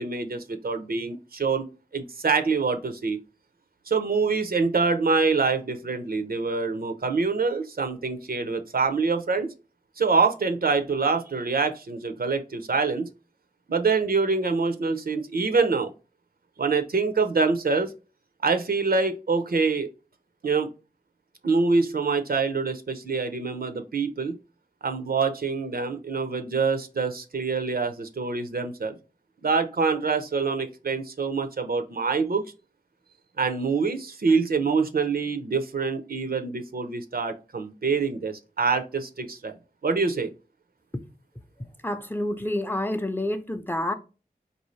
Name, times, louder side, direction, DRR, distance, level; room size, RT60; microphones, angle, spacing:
voice 1, 0.0-1.6 1.9-3.2 3.9-9.5 10.0-13.1 13.7-15.9 16.6-17.9 18.4-19.9 20.4-20.7 21.4-24.4 24.8-29.0 29.4-32.4 33.4-39.5 39.8-40.3, right 4 dB, 75° right, 0.6 m, -25 dB
voice 2, 41.8-43.9, left 1 dB, 15° left, 0.5 m, -28 dB
4.8 x 2.7 x 3.1 m
wide cardioid pair, 55°, 15 cm